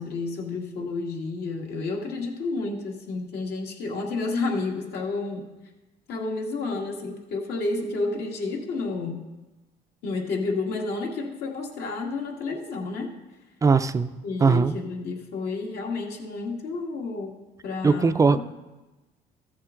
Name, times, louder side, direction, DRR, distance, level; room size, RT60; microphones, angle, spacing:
voice 1, 0.0-5.5 6.1-9.2 10.0-13.1 14.2-17.3 17.6-18.4, left 3 dB, 70° left, 1 dB, 1.8 m, -30 dB
voice 2, 13.6-14.1 14.4-14.7 17.8-18.4, right 4 dB, 20° right, 12 dB, 0.4 m, -19 dB
14.5 x 7.2 x 3.8 m, 1.1 s
cardioid pair, 110°, 17 cm